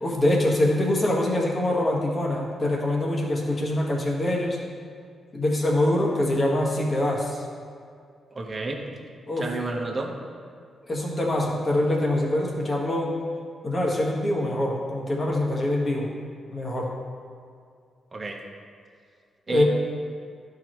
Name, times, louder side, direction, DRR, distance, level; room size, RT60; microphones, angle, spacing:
voice 1, 0.0-4.6 5.3-7.4 9.3-9.5 10.9-13.1 13.6-16.1 16.5-16.9 19.5-19.6, left 1 dB, 35° left, -2 dB, 1.6 m, -24 dB
voice 2, 8.3-8.8 9.4-10.1 18.1-18.4 19.5-19.6, right 3 dB, 35° right, 0 dB, 1.0 m, -30 dB
11.5 x 4.8 x 3.1 m, 2.2 s
cardioid pair, 90°, 0 cm